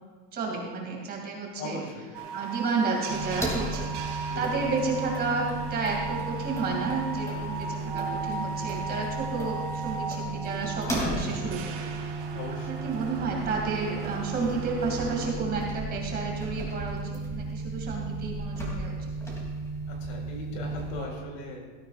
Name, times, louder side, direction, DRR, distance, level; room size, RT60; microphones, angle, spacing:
voice 1, 0.3-1.8 2.3-11.7 12.7-19.1, right 4 dB, 25° right, -1 dB, 2.6 m, -31 dB
voice 2, 1.6-2.1 4.3-4.7 10.9-11.4 12.3-12.8 19.9-21.6, left 2 dB, 70° left, 0 dB, 4.8 m, -39 dB
sound 1, 2.1-15.3, right 4 dB, 55° right, 2.9 m, -37 dB
sound 2, 3.1-21.0, right 2 dB, 10° left, 2.9 m, -34 dB
19.0 x 14.0 x 2.5 m, 1.5 s
cardioid pair, 175°, 38 cm